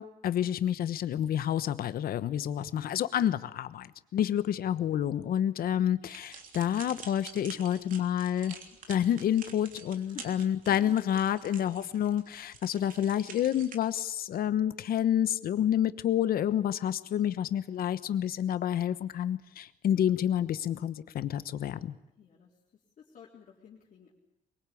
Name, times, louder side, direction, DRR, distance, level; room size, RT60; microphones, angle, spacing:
voice 1, 0.0-8.6 8.9-22.0, left 10 dB, 85° left, 13 dB, 1.2 m, -29 dB
sound 1, 6.1-13.8, right 6 dB, 70° right, 3.3 m, -48 dB
voice 2, 22.1-22.5 23.0-24.1, left 8 dB, 60° left, -4 dB, 4.0 m, -51 dB
23.5 x 23.0 x 8.6 m, 0.80 s
wide cardioid pair, 175°, 15 cm